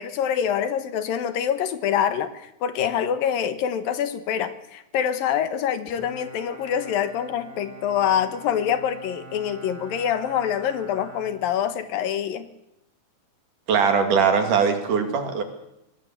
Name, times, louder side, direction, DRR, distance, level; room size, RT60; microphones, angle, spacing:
voice 1, 0.0-12.5, left 9 dB, 75° left, 10 dB, 3.1 m, -25 dB
Bowed string instrument, 6.0-12.1, right 2 dB, 5° right, 7.5 m, -44 dB
voice 2, 13.7-15.4, right 6 dB, 65° right, 6 dB, 3.8 m, -21 dB
25.0 x 19.5 x 7.6 m, 0.87 s
omnidirectional pair, 4.1 m